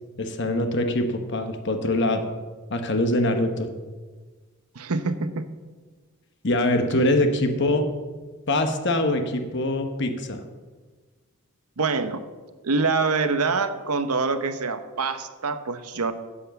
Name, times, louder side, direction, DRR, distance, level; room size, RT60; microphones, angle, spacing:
voice 1, 0.2-2.2 2.7-3.7 6.4-7.9 8.5-10.4, left 1 dB, 55° left, 6 dB, 1.0 m, -23 dB
voice 2, 4.7-5.4 11.8-12.2 12.6-16.1, right 4 dB, 85° right, 10 dB, 0.9 m, -25 dB
9.8 x 8.0 x 7.0 m, 1.4 s
head